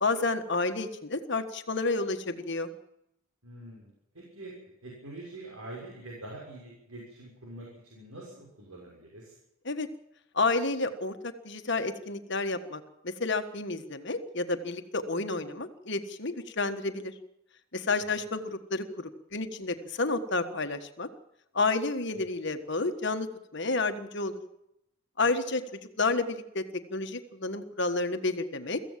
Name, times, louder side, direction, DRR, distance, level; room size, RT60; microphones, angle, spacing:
voice 1, 0.0-2.7 9.6-9.9 10.3-17.1 17.7-21.1 21.5-23.3 23.5-24.4 25.2-28.8, left 3 dB, 55° left, 7 dB, 1.6 m, -30 dB
voice 2, 3.4-4.5 4.8-9.3 18.1-18.2 22.1-22.2, right 2 dB, 85° right, -2 dB, 6.4 m, -45 dB
23.5 x 15.5 x 7.5 m, 0.81 s
head